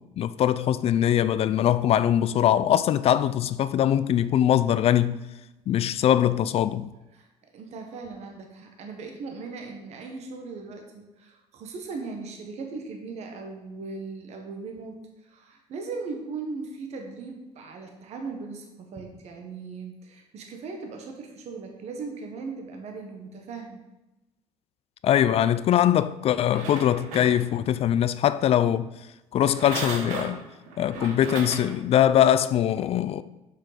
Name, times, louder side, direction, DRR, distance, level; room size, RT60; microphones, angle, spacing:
voice 1, 0.0-5.2 5.7-6.9 25.0-28.9 29.3-30.4 30.8-33.2, left 10 dB, 55° left, 0.4 m, -22 dB
voice 2, 7.5-23.8, right 4 dB, 65° right, 1.5 m, -38 dB
sound 1, 26.3-27.8 29.4-31.8 32.3-32.4, right 4 dB, 80° right, 1.5 m, -36 dB
6.5 x 6.2 x 5.1 m
cardioid pair, 90°, 12 cm